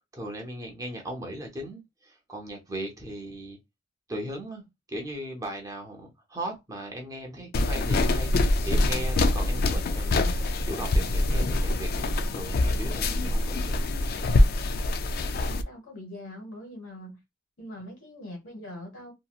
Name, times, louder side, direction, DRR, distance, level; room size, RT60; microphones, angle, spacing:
voice 1, 0.1-3.6 4.1-13.9, right 1 dB, 15° right, 0.7 m, -38 dB
sound 1, 7.5-15.6, left 2 dB, 50° left, 0.3 m, -24 dB
voice 2, 15.4-17.2 17.6-19.1, left 1 dB, 70° left, 1.5 m, -42 dB
2.9 x 2.6 x 2.3 m
head